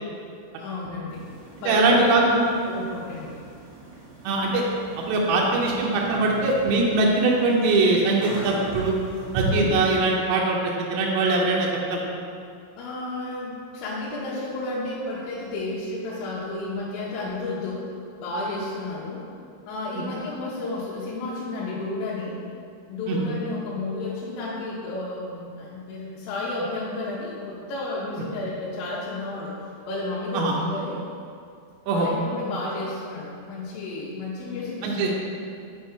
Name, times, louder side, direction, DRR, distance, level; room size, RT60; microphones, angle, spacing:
voice 1, 0.6-1.3 1.6-3.5 12.8-17.8 18.2-19.2 19.7-22.4 22.9-29.5 29.9-31.0 31.9-35.1, left 2 dB, 90° left, -7 dB, 3.2 m, -32 dB
sound 1, 1.1-10.0, right 1 dB, 65° right, 3.5 m, -36 dB
voice 2, 1.7-2.4 4.2-4.7 5.0-9.0 9.3-10.6 10.9-12.0 23.1-23.2 30.3-30.5 31.9-32.1 34.8-35.1, right 3 dB, 90° right, -2 dB, 2.4 m, -21 dB
7.6 x 4.4 x 3.5 m, 2.4 s
omnidirectional pair, 5.7 m